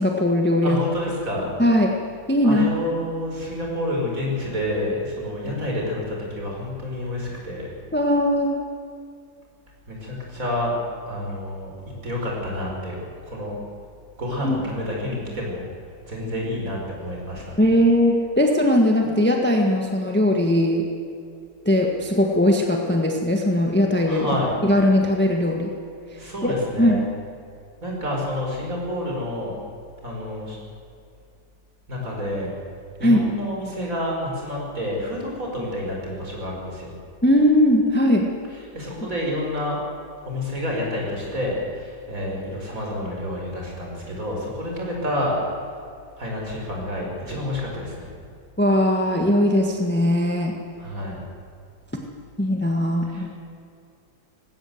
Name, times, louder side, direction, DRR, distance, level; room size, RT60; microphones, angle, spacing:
voice 1, 0.0-0.8 1.6-1.9 2.3-2.8 7.9-8.6 14.4-14.5 17.6-20.9 21.6-24.3 24.6-25.7 26.4-27.0 33.0-33.2 37.2-38.3 48.6-50.5 52.4-53.3, left 1 dB, 5° left, 2 dB, 1.5 m, -19 dB
voice 2, 0.6-1.5 2.4-7.7 9.9-10.7 11.1-11.7 12.0-13.0 13.2-13.6 14.2-15.6 16.1-17.7 24.1-24.6 26.2-27.0 27.8-29.6 30.0-30.6 31.9-32.5 33.0-36.9 38.7-39.8 40.3-45.4 46.2-48.1 50.8-51.2 53.1-53.3, left 1 dB, 45° right, -1 dB, 5.5 m, -29 dB
19.5 x 16.5 x 8.0 m, 2.4 s
omnidirectional pair, 2.0 m